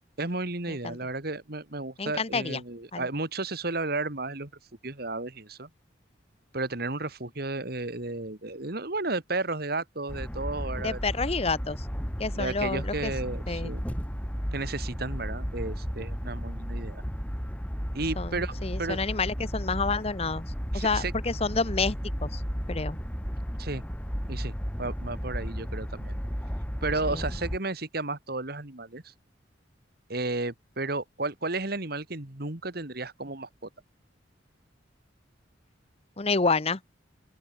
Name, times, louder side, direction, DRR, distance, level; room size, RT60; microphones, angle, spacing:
voice 1, 0.2-4.5 4.8-5.7 6.5-11.0 12.3-13.8 14.5-17.0 17.9-19.0 20.7-21.1 23.6-23.8 24.3-24.5 24.8-26.2 26.8-29.1 30.1-33.5, right 2 dB, 55° right, 2.3 m, -33 dB
voice 2, 2.0-2.6 2.9-3.1 10.8-11.9 12.2-13.1 13.5-13.7 18.2-20.4 20.7-22.4 22.7-23.0 27.1-27.2 36.2-36.8, left 4 dB, 35° left, 1.0 m, -29 dB
sound 1, 10.1-27.6, equal, 10° left, 4.5 m, -34 dB
open air
head